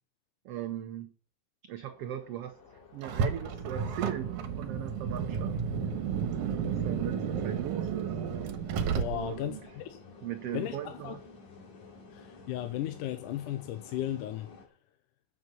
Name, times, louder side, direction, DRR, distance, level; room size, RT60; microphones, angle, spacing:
voice 1, 0.4-1.1 1.7-2.6 2.9-5.6 6.6-8.1 9.1-9.6 10.2-11.2, right 11 dB, 90° right, 1.3 m, -38 dB
sound 1, 1.8-14.7, left 4 dB, 60° left, 3.4 m, -53 dB
Car, 3.0-9.5, right 6 dB, 70° right, 2.5 m, -32 dB
voice 2, 9.0-10.0 10.5-11.2 12.1-14.5, left 12 dB, 85° left, 2.4 m, -35 dB
10.0 x 7.7 x 6.8 m
omnidirectional pair, 3.7 m